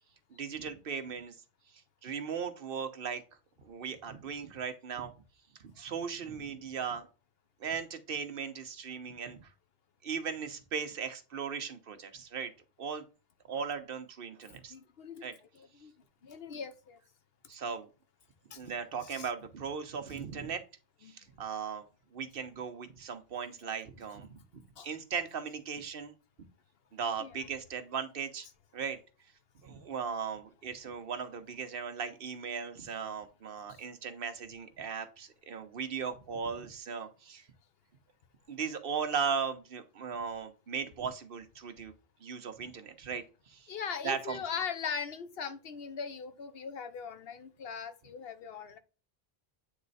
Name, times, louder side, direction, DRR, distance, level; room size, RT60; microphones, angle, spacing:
voice 1, 0.4-1.3 2.0-3.2 3.6-5.1 5.6-7.1 7.6-9.5 10.0-12.5 12.8-13.0 13.5-14.7 15.2-15.3 17.5-17.9 18.5-20.6 21.0-21.8 22.1-24.4 24.8-26.1 26.9-28.5 28.7-29.0 29.6-37.5 38.5-41.9 42.2-43.7 44.0-44.4, right 6 dB, 65° right, 1.1 m, -37 dB
voice 2, 14.7-15.3 15.5-15.9 16.2-17.0 18.5-18.6 19.1-19.3 21.0-21.1 24.8-24.9 27.2-27.3 33.7-33.8 43.7-48.8, left 6 dB, 70° left, 1.0 m, -40 dB
8.5 x 3.2 x 4.0 m
omnidirectional pair, 1.0 m